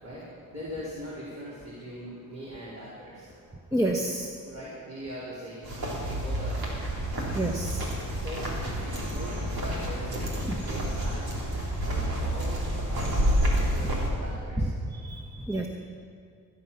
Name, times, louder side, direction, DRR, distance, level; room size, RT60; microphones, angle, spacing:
voice 1, 0.0-3.4 4.5-5.7 6.0-6.9 8.2-11.4 11.8-14.7, equal, 45° right, -8 dB, 4.7 m, -41 dB
voice 2, 3.7-4.3 7.3-7.8 10.4-10.6 14.6-14.7 15.0-15.7, right 1 dB, 10° right, 0 dB, 1.3 m, -29 dB
sound 1, 5.6-14.1, equal, 75° right, 3.6 m, -29 dB
20.0 x 9.5 x 5.8 m, 2.3 s
cardioid pair, 60°, 36 cm